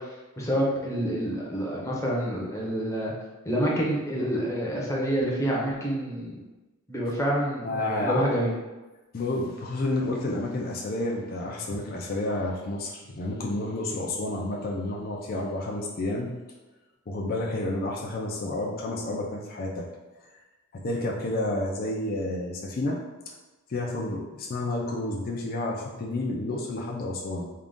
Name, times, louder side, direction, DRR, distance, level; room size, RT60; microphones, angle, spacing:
voice 1, 0.0-3.1 3.4-6.4 6.9-8.5, equal, 15° left, -4 dB, 0.7 m, -28 dB
voice 2, 7.6-8.3 9.1-16.3 17.1-19.9 20.7-23.0 23.7-27.5, left 2 dB, 45° left, -2 dB, 0.5 m, -30 dB
3.7 x 2.4 x 3.6 m, 1.1 s
head